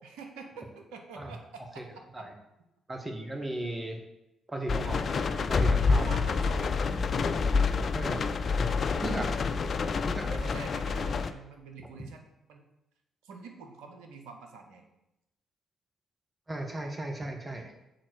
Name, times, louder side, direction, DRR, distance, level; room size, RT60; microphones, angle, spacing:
voice 1, 0.0-1.8 5.4-8.3 9.0-9.5 10.2-12.6 13.2-14.9, right 4 dB, 80° right, 4 dB, 1.0 m, -47 dB
voice 2, 2.9-4.0 4.5-5.0 5.5-6.1 7.9-8.2 9.0-9.3 10.1-10.3 16.5-17.7, right 1 dB, 25° right, 3 dB, 1.8 m, -35 dB
sound 1, 4.7-11.3, left 4 dB, 50° left, 0.5 m, -27 dB
6.5 x 4.2 x 6.6 m, 0.90 s
hypercardioid pair, 45°, 0 cm